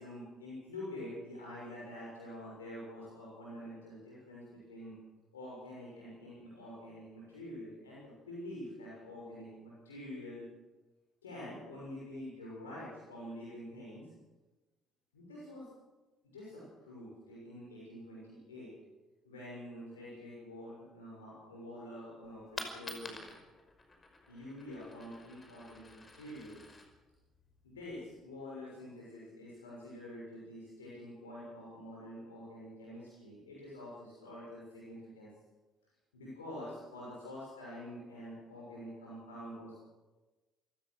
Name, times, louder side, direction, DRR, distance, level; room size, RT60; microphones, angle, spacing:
voice 1, 0.0-4.9 5.3-10.5 11.2-14.1 15.1-15.7 16.3-18.7 19.2-23.4 24.3-26.7 27.6-35.3 36.1-39.8, left 1 dB, 90° left, -6 dB, 6.6 m, -47 dB
Coin (dropping), 22.2-28.2, left 2 dB, 30° left, 5.6 m, -50 dB
28.0 x 17.0 x 6.5 m, 1.2 s
hypercardioid pair, 50°, 0 cm